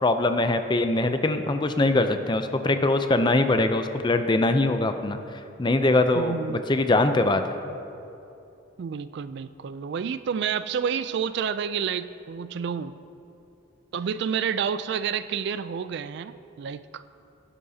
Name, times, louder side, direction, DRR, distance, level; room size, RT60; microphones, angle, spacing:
voice 1, 0.0-5.2 5.6-7.4, left 2 dB, 20° left, 8 dB, 0.4 m, -22 dB
voice 2, 6.1-6.8 8.8-12.9 13.9-17.0, right 7 dB, 55° right, 13 dB, 0.3 m, -29 dB
16.5 x 11.0 x 2.8 m, 2.8 s
head